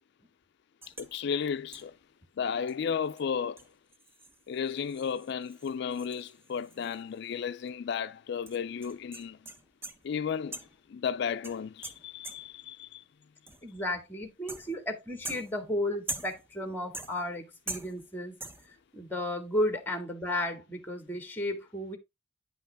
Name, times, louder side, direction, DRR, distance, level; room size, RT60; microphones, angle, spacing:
sound 1, 0.8-1.2 1.7-2.0 2.7-2.8 3.1-3.2 3.6-7.3 7.6-7.7 8.5-10.1 10.5-10.9 11.4-12.7 13.5-13.8 14.5-14.9 15.2-16.6 16.9-17.4 17.7-18.1 18.4-18.8, right 2 dB, 10° right, 0.7 m, -43 dB
voice 1, 0.9-1.9 2.4-3.6 4.5-9.4 10.0-10.6 10.9-13.0, left 7 dB, 60° left, 0.3 m, -33 dB
voice 2, 13.6-18.3 18.7-22.0, left 1 dB, 10° left, 2.0 m, -33 dB
9.8 x 5.6 x 3.4 m
head